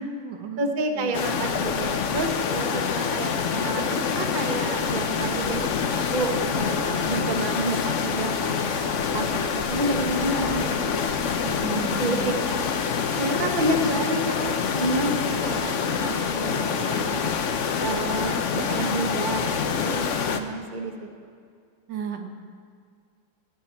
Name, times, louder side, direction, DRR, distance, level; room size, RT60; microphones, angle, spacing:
voice 1, 0.0-0.7 0.9-1.2 11.4-12.3 21.9-22.3, right 7 dB, 80° right, 5 dB, 1.8 m, -35 dB
voice 2, 0.6-8.8 9.1-11.4 12.0-12.7 13.2-17.3 17.8-20.9, right 2 dB, 30° right, 4 dB, 1.2 m, -30 dB
sound 1, 1.1-20.4, left 6 dB, 55° left, 1.0 m, -26 dB
14.0 x 8.8 x 9.4 m, 2.2 s
omnidirectional pair, 1.9 m